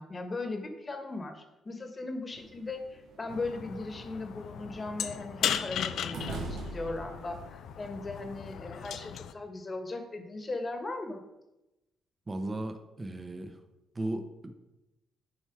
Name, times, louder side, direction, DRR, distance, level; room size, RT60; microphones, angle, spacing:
voice 1, 0.0-11.2, left 2 dB, 30° left, 6 dB, 1.4 m, -38 dB
sound 1, 2.3-9.0, right 3 dB, 90° right, 1.6 m, -46 dB
sound 2, 3.3-9.3, left 9 dB, 75° left, 0.5 m, -37 dB
voice 2, 12.3-13.6 13.9-14.5, right 1 dB, 25° right, 7 dB, 0.9 m, -36 dB
11.0 x 4.4 x 4.7 m, 0.98 s
cardioid pair, 90°, 0 cm